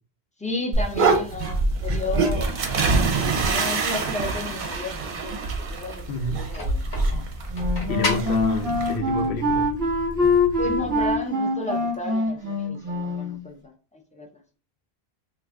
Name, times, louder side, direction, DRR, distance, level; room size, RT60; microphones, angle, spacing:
voice 1, 0.4-2.6 3.5-5.4 5.7-6.0 6.3-7.2 10.6-14.3, left 2 dB, 10° left, 0.3 m, -33 dB
sound 1, 0.7-9.0, right 3 dB, 55° right, 0.7 m, -25 dB
voice 2, 6.1-6.5 7.9-9.7, left 2 dB, 85° left, 0.9 m, -29 dB
sound 2, 6.2-11.2, left 2 dB, 50° left, 0.9 m, -34 dB
Wind instrument woodwind instrument, 7.5-13.4, left 2 dB, 20° right, 0.8 m, -24 dB
2.5 x 2.4 x 3.3 m
omnidirectional pair, 1.1 m